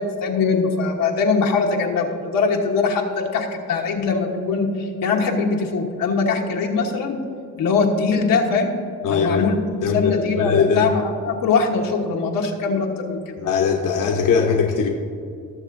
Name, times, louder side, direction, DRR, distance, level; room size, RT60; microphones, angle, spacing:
voice 1, 0.0-7.2 7.6-8.7 9.1-13.4, left 4 dB, 90° left, 1 dB, 1.2 m, -22 dB
voice 2, 9.0-9.5 9.8-10.9 13.4-14.9, left 6 dB, 70° left, 1 dB, 0.9 m, -20 dB
19.5 x 6.6 x 2.6 m, 2.4 s
cardioid pair, 100°, 33 cm